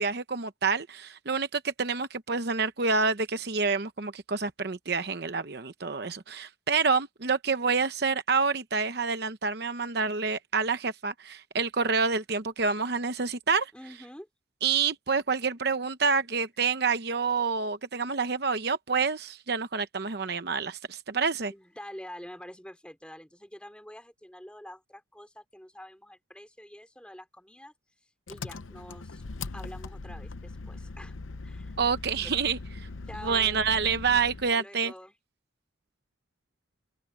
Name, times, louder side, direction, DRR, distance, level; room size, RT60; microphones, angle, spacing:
voice 1, 0.0-13.7 14.6-21.5 31.8-32.9 33.2-34.9, right 5 dB, 55° right, 0.9 m, -28 dB
voice 2, 13.7-14.3 21.5-27.7 28.3-29.2 29.5-31.2 31.4-31.8 32.2-32.3 33.1-33.7 34.5-35.1, equal, 5° left, 3.3 m, -46 dB
Engine, 28.3-34.6, left 3 dB, 85° left, 0.8 m, -40 dB
open air
head